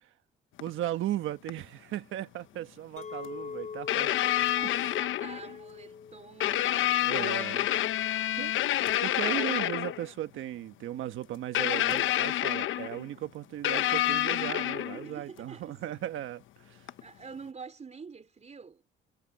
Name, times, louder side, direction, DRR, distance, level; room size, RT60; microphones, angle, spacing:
sound 1, 0.6-0.7 1.5-1.6 3.2-3.3 3.9-5.5 6.4-10.1 11.5-13.0 13.6-15.1 16.9-17.0, left 13 dB, 75° left, 1.0 m, -28 dB
voice 1, 0.6-4.1 4.6-5.0 7.0-7.7 8.3-8.5 9.0-16.9, right 13 dB, 80° right, 1.4 m, -36 dB
Chink clink, 3.0-8.1, left 6 dB, 35° left, 5.0 m, -44 dB
voice 2, 4.0-7.3 7.7-8.2 10.3-10.4 14.9-16.0 17.0-18.8, right 5 dB, 35° right, 4.5 m, -48 dB
cardioid pair, 90°, 20 cm